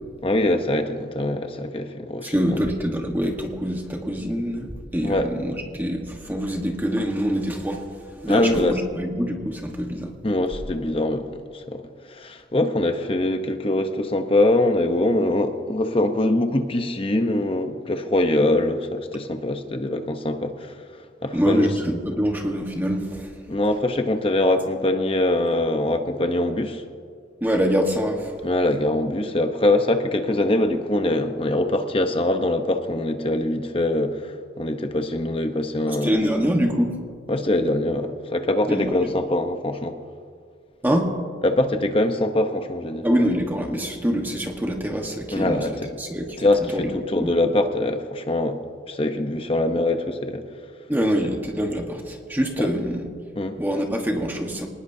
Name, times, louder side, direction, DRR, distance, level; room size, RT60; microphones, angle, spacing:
voice 1, 0.2-2.3 5.0-5.3 8.3-8.8 10.2-11.8 12.1-20.7 21.2-21.7 23.5-26.8 28.4-36.2 37.3-40.0 41.4-43.1 45.3-45.7 46.4-48.6 48.9-50.4 52.6-52.7 53.4-53.6, left 1 dB, 30° left, 7 dB, 0.8 m, -23 dB
voice 2, 2.2-7.8 8.2-10.1 21.3-23.3 27.4-28.3 35.9-36.9 38.7-39.1 40.8-41.1 43.0-45.7 46.0-46.4 46.7-47.3 50.9-53.1 53.6-54.7, equal, 10° right, 1 dB, 1.3 m, -25 dB
25.0 x 19.5 x 2.7 m, 2.1 s
head